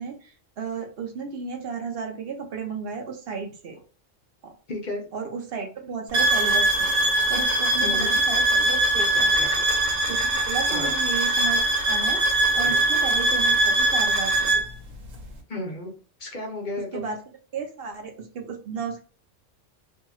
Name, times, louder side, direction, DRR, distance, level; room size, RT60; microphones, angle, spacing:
voice 1, 0.0-3.8 4.4-4.5 5.1-6.9 7.3-9.3 10.1-12.2 12.5-14.5 16.9-17.2 17.5-19.0, right 5 dB, 60° right, 3 dB, 0.7 m, -33 dB
voice 2, 4.7-5.0 7.8-8.2 9.3-9.5 10.7-10.9 12.6-12.8 15.5-15.9 16.2-17.0, left 2 dB, 45° left, 1 dB, 0.7 m, -33 dB
sound 1, 6.1-14.7, right 2 dB, 80° right, 1.1 m, -22 dB
2.9 x 2.7 x 2.3 m, 0.37 s
omnidirectional pair, 1.3 m